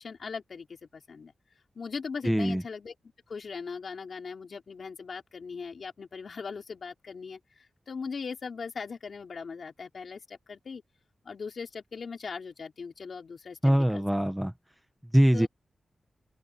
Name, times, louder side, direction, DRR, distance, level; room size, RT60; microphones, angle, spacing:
voice 1, 0.0-1.3 1.8-2.9 3.3-10.8 11.2-14.0 15.3-15.5, left 5 dB, 50° left, 4.1 m, -39 dB
voice 2, 2.2-2.6 13.6-14.5 15.1-15.5, equal, 5° right, 0.8 m, -23 dB
open air
wide cardioid pair, 180°, 0 cm